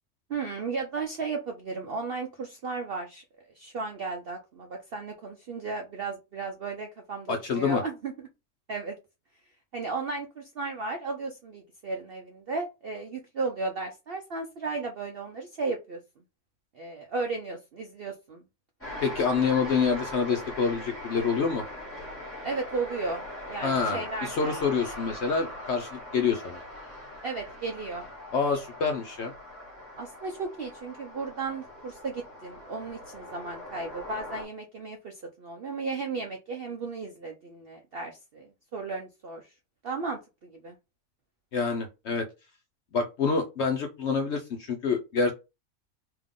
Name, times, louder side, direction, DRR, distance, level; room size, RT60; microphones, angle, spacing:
voice 1, 0.3-3.2 3.5-8.1 8.7-9.0 9.7-16.0 16.7-18.4 22.4-24.5 27.2-28.1 30.0-39.5 39.8-40.8, right 4 dB, 65° right, 3 dB, 0.5 m, -35 dB
voice 2, 7.3-7.8 19.0-21.6 23.6-26.6 28.3-29.3 41.5-42.3 42.9-45.3, left 5 dB, 65° left, 4 dB, 0.7 m, -27 dB
sound 1, 18.8-34.4, left 1 dB, 10° left, 1.6 m, -41 dB
3.6 x 2.8 x 3.6 m, 0.27 s
omnidirectional pair, 1.6 m